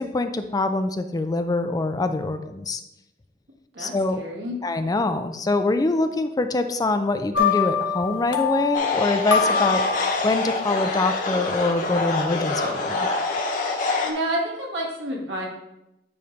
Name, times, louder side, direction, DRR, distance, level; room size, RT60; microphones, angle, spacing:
voice 1, 0.0-2.8 3.8-4.2 4.6-9.8 10.2-13.1, left 2 dB, 20° left, 8 dB, 0.4 m, -24 dB
voice 2, 3.7-4.6 14.0-15.5, right 1 dB, 80° right, -2 dB, 2.0 m, -29 dB
sound 1, 7.3-10.6, left 6 dB, 75° left, 0.8 m, -25 dB
sound 2, 8.7-14.1, left 3 dB, 45° left, 1.1 m, -26 dB
9.3 x 3.3 x 5.1 m, 0.90 s
head